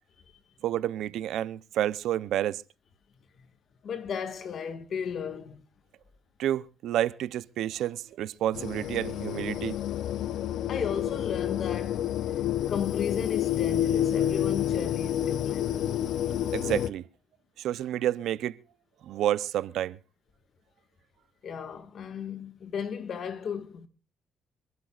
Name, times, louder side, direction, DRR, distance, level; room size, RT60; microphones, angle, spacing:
voice 1, 0.6-2.6 6.4-9.8 16.5-17.1 17.6-18.6 19.0-20.0, right 12 dB, 80° right, 0.6 m, -29 dB
voice 2, 3.8-5.6 10.7-12.3 12.7-15.8 21.4-23.9, left 7 dB, 60° left, 1.6 m, -35 dB
sound 1, 8.5-16.9, left 11 dB, 75° left, 0.6 m, -29 dB
26.5 x 12.0 x 2.4 m
cardioid pair, 90°, 0 cm